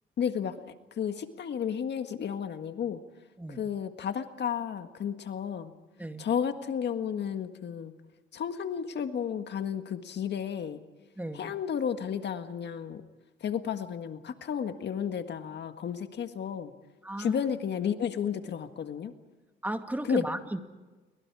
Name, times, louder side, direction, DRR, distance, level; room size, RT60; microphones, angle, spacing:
voice 1, 0.2-0.6 1.0-3.0 3.5-5.7 6.2-7.9 8.3-10.8 11.3-13.0 13.4-16.7 17.2-19.1 20.0-20.2, left 8 dB, 60° left, 8 dB, 1.8 m, -32 dB
voice 2, 11.2-11.5 17.0-17.4 19.6-20.6, right 1 dB, 10° right, 6 dB, 2.1 m, -34 dB
29.0 x 24.0 x 4.9 m, 1.2 s
cardioid pair, 90°, 20 cm